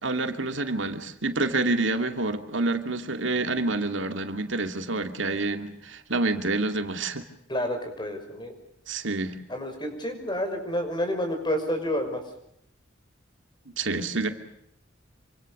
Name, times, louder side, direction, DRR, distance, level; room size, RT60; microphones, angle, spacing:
voice 1, 0.0-7.2 8.9-9.4 13.8-14.3, right 2 dB, 80° right, 7 dB, 2.5 m, -28 dB
voice 2, 7.5-8.5 9.5-12.2, equal, 25° left, 5 dB, 5.9 m, -29 dB
27.5 x 25.0 x 6.6 m, 0.73 s
head